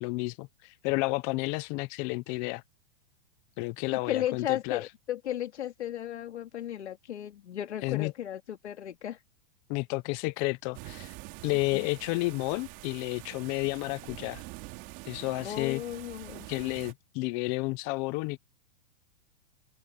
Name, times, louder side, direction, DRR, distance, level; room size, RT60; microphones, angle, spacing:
voice 1, 0.0-2.6 3.6-4.9 7.8-8.1 9.7-11.1 11.4-14.4 15.1-15.8 16.5-18.4, left 24 dB, 30° left, 0.7 m, -31 dB
voice 2, 3.9-9.2 11.7-11.9 15.4-16.5, left 11 dB, 90° left, 3.0 m, -35 dB
sound 1, 10.7-16.9, right 22 dB, 35° right, 2.7 m, -45 dB
hypercardioid pair, 155°, 33 cm